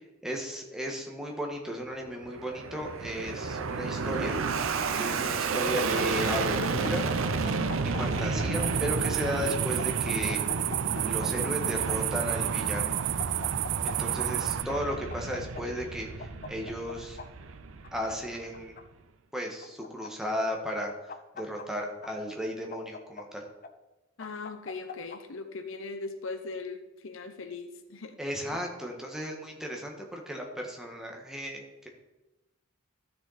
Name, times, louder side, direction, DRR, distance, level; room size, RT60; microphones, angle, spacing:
voice 1, 0.2-7.1 7.4-10.4 11.1-12.9 13.8-17.2 17.9-18.8 19.3-23.5 28.2-31.9, equal, 5° right, 0 dB, 1.6 m, -35 dB
Fixed-wing aircraft airplane, 2.1-18.7, right 4 dB, 85° right, 0.7 m, -32 dB
sound 1, 5.5-7.2 7.4-9.3 9.8-12.0 12.8-13.9 14.2-14.3 14.7-15.6 16.2-17.3 17.8-18.8 19.6-20.5 20.8-22.1 22.7-23.7 24.2-25.2, left 4 dB, 45° left, 0.7 m, -41 dB
sound 2, 8.5-14.6, right 13 dB, 60° right, 0.3 m, -31 dB
voice 2, 24.2-28.1, left 3 dB, 75° left, 8 dB, 0.8 m, -39 dB
13.0 x 6.6 x 4.2 m, 1.0 s
head